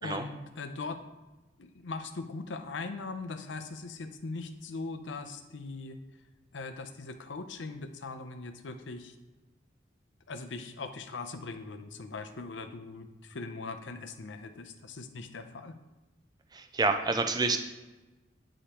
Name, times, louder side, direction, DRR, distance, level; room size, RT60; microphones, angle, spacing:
voice 1, 0.0-1.0 1.6-6.0 6.5-9.2 10.3-15.7, left 3 dB, 80° left, 8 dB, 0.6 m, -40 dB
voice 2, 16.5-17.6, right 3 dB, 20° right, 6 dB, 0.4 m, -28 dB
9.6 x 5.0 x 2.9 m, 1.1 s
head